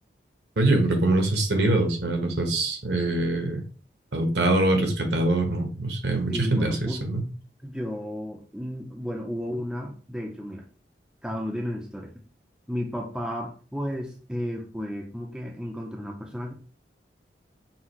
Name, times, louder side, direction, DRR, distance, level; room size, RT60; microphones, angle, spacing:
voice 1, 0.6-3.6 4.1-7.2, right 2 dB, 70° right, 3 dB, 1.1 m, -24 dB
voice 2, 6.3-7.0 7.6-10.7 11.2-12.1 12.7-16.5, equal, 5° right, 1 dB, 0.5 m, -33 dB
5.7 x 2.5 x 3.0 m, 0.38 s
head